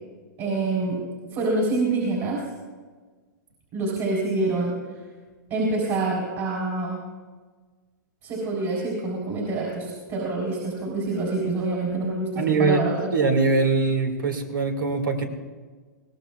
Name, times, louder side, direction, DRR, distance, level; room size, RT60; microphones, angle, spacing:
voice 1, 0.4-1.0 1.3-2.4 3.7-4.7 5.5-7.0 8.2-13.2, right 2 dB, 40° right, -3 dB, 3.8 m, -26 dB
voice 2, 12.4-12.8 13.1-15.3, right 4 dB, 85° right, 6 dB, 1.9 m, -22 dB
21.5 x 17.5 x 2.3 m, 1.4 s
hypercardioid pair, 130°, 11 cm